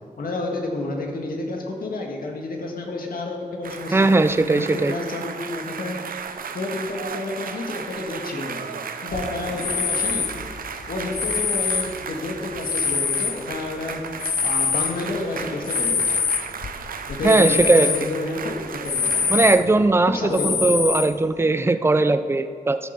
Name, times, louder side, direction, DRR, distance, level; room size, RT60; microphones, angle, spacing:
voice 1, 0.2-4.1 4.5-6.0 6.5-10.4 10.9-14.1 14.4-16.2 17.1-19.7 20.0-20.7, left 2 dB, 85° left, 1 dB, 1.8 m, -30 dB
sound 1, 3.6-19.5, right 6 dB, 80° right, 0.6 m, -35 dB
voice 2, 3.9-4.9 17.2-17.9 19.3-22.8, right 2 dB, 15° right, 10 dB, 0.4 m, -18 dB
sound 2, 9.1-13.8 14.2-18.1 18.4-18.5 18.9-19.9 20.3-21.3, left 6 dB, 50° left, 0.5 m, -25 dB
13.5 x 7.6 x 5.2 m, 2.1 s
wide cardioid pair, 135°, 15 cm